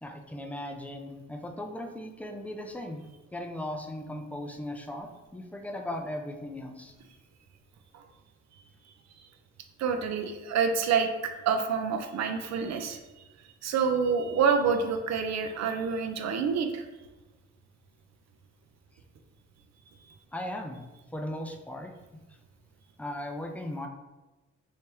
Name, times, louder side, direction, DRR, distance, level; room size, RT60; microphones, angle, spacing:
voice 1, 0.0-3.0 3.3-6.9 18.9-19.0 20.3-20.8 21.1-21.9 22.3-22.4 23.0-23.9, left 1 dB, 5° left, 3 dB, 0.4 m, -37 dB
voice 2, 9.8-13.0 13.6-16.9, right 6 dB, 65° right, 6 dB, 0.5 m, -27 dB
3.3 x 3.2 x 2.8 m, 1.1 s
cardioid pair, 90°, 30 cm